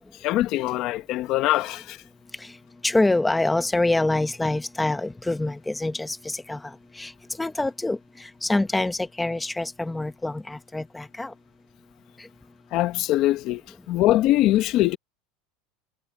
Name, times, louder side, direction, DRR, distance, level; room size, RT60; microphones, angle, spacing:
voice 1, 0.2-2.0 12.7-13.6 13.9-15.0, left 15 dB, 35° left, 0.9 m, -22 dB
voice 2, 2.8-6.6 7.0-7.1 7.4-8.0 8.4-11.3, left 2 dB, 5° left, 0.9 m, -25 dB
supercardioid pair, 175°, 0 cm